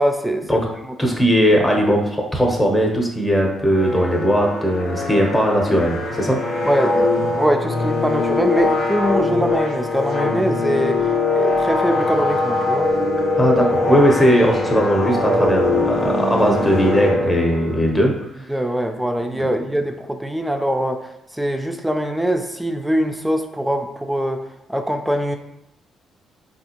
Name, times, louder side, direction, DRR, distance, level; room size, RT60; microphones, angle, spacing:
voice 1, 0.0-0.9 6.6-12.9 18.5-24.4 24.7-25.4, equal, 5° right, 5 dB, 0.4 m, -22 dB
voice 2, 1.0-6.4 13.4-18.1, equal, 15° left, 0 dB, 0.8 m, -18 dB
sound 1, 3.7-17.8, left 2 dB, 80° left, 0.6 m, -22 dB
3.4 x 2.5 x 2.8 m, 0.83 s
cardioid pair, 90°, 0 cm